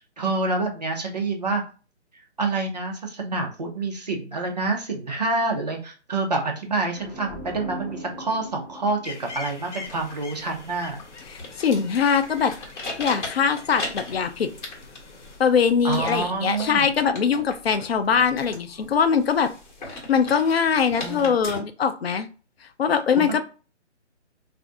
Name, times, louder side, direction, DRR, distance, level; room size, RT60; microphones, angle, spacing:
voice 1, 0.0-1.6 2.4-11.0 15.8-16.9 21.0-21.3 23.3-23.4, right 3 dB, 35° right, 2 dB, 0.6 m, -27 dB
sound 1, 6.9-10.6, right 1 dB, 15° left, 0.6 m, -41 dB
sound 2, 9.0-15.4, left 4 dB, 80° left, 0.9 m, -43 dB
sound 3, 9.8-21.6, left 2 dB, 40° left, 1.4 m, -39 dB
voice 2, 11.3-12.5 13.0-14.5 15.4-19.5 19.9-22.3 22.8-23.4, left 6 dB, 60° left, 9 dB, 0.5 m, -22 dB
2.6 x 2.5 x 3.6 m, 0.36 s
hypercardioid pair, 165°, 35 cm